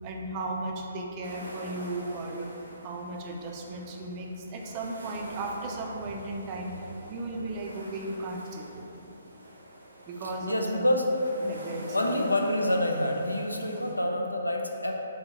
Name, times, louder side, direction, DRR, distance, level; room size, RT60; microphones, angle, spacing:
voice 1, 0.0-2.5 2.8-6.8 7.1-9.1 10.1-10.8 11.4-12.3, right 2 dB, 30° right, 0 dB, 0.4 m, -36 dB
sound 1, 1.2-13.9, equal, 75° right, 0.7 m, -47 dB
voice 2, 10.5-11.1 11.9-14.9, left 1 dB, 85° left, 1 dB, 0.4 m, -27 dB
3.4 x 3.4 x 2.9 m, 2.9 s
figure-of-eight pair, 130°, 0 cm